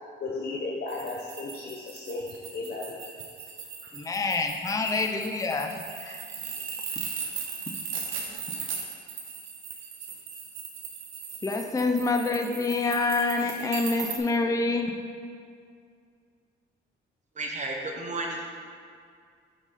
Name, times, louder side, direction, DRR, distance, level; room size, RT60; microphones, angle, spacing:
voice 1, 0.2-3.0, left 3 dB, 50° left, -2 dB, 0.7 m, -35 dB
sound 1, 0.9-14.2, right 6 dB, 80° right, 1.0 m, -38 dB
voice 2, 3.9-5.7 6.0-6.3 11.4-14.9, left 3 dB, 15° left, 4 dB, 0.5 m, -27 dB
voice 3, 17.4-18.5, right 2 dB, 35° right, 0 dB, 1.0 m, -32 dB
6.1 x 5.3 x 4.1 m, 2.2 s
cardioid pair, 90°, 20 cm